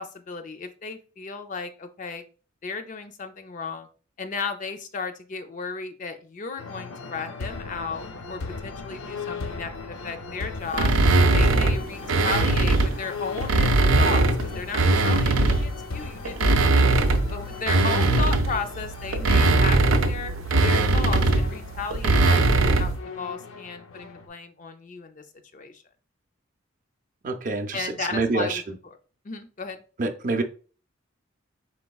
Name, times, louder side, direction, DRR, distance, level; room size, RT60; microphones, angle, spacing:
voice 1, 0.0-2.2 2.6-3.9 4.2-10.9 11.3-16.9 17.3-20.3 20.6-25.2 25.5-25.8 27.7-28.6 29.2-29.8, left 4 dB, 40° left, 8 dB, 0.4 m, -34 dB
sound 1, 6.6-24.3, left 4 dB, 85° left, 0.6 m, -38 dB
sound 2, 10.7-13.0 13.4-15.8 16.2-23.0, right 2 dB, 85° right, 0.5 m, -20 dB
voice 2, 27.2-28.8 30.0-30.4, right 3 dB, 40° right, 6 dB, 0.5 m, -27 dB
4.5 x 3.7 x 2.3 m, 0.38 s
head